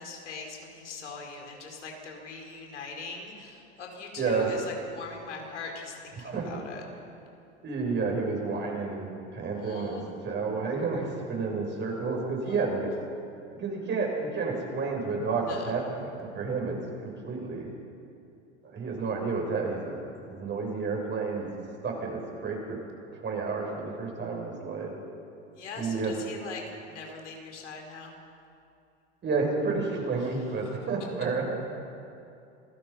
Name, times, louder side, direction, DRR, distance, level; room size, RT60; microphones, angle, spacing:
voice 1, 0.0-6.8 9.5-10.1 12.4-12.9 15.5-15.7 25.5-28.1 30.2-30.3, left 4 dB, 90° left, 1 dB, 4.7 m, -41 dB
voice 2, 4.2-4.6 6.2-6.6 7.6-12.9 13.6-16.8 17.0-17.7 18.7-20.0 20.3-21.5 21.8-22.8 23.2-24.9 25.8-26.1 29.2-31.4, right 4 dB, 30° right, 0 dB, 7.1 m, -30 dB
27.5 x 17.5 x 5.8 m, 2.5 s
hypercardioid pair, 95°, 34 cm